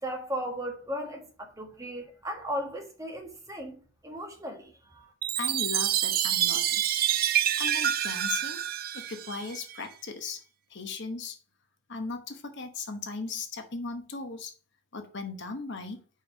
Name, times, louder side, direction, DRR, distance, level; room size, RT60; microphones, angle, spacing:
voice 1, 0.0-5.1, equal, 15° right, 1.5 m, -36 dB
Chime, 5.2-9.8, right 11 dB, 40° right, 0.4 m, -27 dB
voice 2, 5.4-6.9 7.6-8.6 8.9-10.4 10.7-11.4 11.9-14.5 14.9-16.0, left 4 dB, 55° left, 1.0 m, -37 dB
5.3 x 4.6 x 5.8 m
head